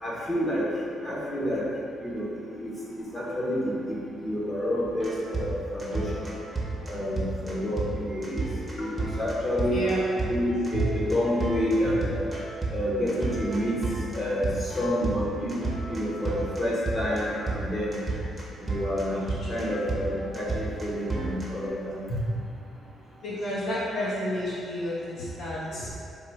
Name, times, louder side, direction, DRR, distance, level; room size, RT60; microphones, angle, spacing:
voice 1, 0.0-0.7 1.0-1.6 2.0-2.3 2.6-2.7 3.0-6.3 6.9-8.5 8.7-9.9 10.3-12.3 12.7-13.8 14.1-18.0 18.6-19.2 19.5-22.0, equal, 35° left, -7 dB, 1.3 m, -28 dB
sound 1, 4.9-21.7, right 3 dB, 20° right, 0.9 m, -33 dB
voice 2, 9.7-10.1 19.0-19.2 19.6-19.9 23.2-25.9, left 1 dB, 65° left, -9 dB, 1.4 m, -31 dB
3.9 x 2.5 x 4.6 m, 2.5 s
cardioid pair, 90°, 0 cm